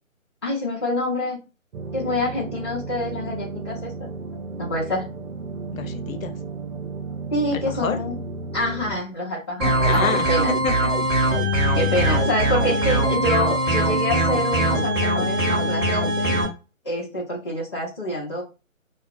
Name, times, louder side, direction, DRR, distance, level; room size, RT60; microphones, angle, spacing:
voice 1, 0.4-1.4 1.9-4.1 4.6-5.1 7.3-8.2 8.5-10.5 11.7-16.3 16.8-18.4, left 1 dB, 20° left, 0.6 m, -26 dB
sound 1, 1.7-9.0, right 3 dB, 80° right, 0.6 m, -34 dB
voice 2, 5.7-6.3 7.5-8.0 9.7-11.0 11.6-11.9, left 5 dB, 80° left, 0.6 m, -29 dB
sound 2, 9.6-16.4, right 1 dB, 20° right, 1.0 m, -21 dB
2.2 x 2.2 x 2.6 m
figure-of-eight pair, 160°, 40 cm